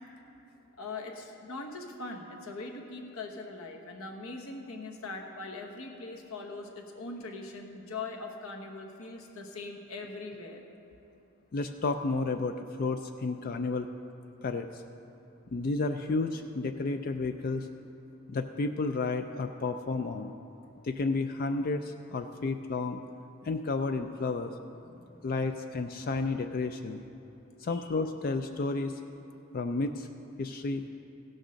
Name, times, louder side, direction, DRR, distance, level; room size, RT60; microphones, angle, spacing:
voice 1, 0.8-10.6 24.9-25.3 27.7-27.9, left 3 dB, 75° left, 2 dB, 1.2 m, -41 dB
voice 2, 11.5-13.9 14.4-14.8 15.5-17.7 18.3-20.3 20.8-23.0 23.4-24.5 25.2-27.0 27.6-29.0 29.5-30.1 30.4-30.8, left 3 dB, 40° left, 7 dB, 0.3 m, -31 dB
15.5 x 6.4 x 6.3 m, 2.7 s
head